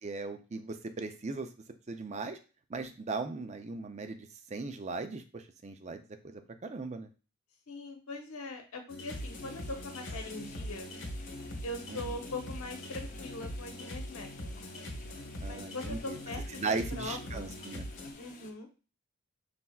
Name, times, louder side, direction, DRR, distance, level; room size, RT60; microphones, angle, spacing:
voice 1, 0.0-1.5 1.9-2.4 2.7-7.1 11.9-12.2 15.4-16.2 16.6-17.9, right 3 dB, 30° right, 8 dB, 0.4 m, -38 dB
voice 2, 7.7-10.9 11.6-14.6 15.4-17.5 18.2-18.7, left 2 dB, 90° left, 3 dB, 1.0 m, -42 dB
sound 1, 8.9-18.1, equal, 65° left, 0.9 m, -42 dB
sound 2, 9.1-18.5, left 4 dB, 40° left, 0.7 m, -53 dB
5.6 x 3.3 x 2.3 m, 0.34 s
head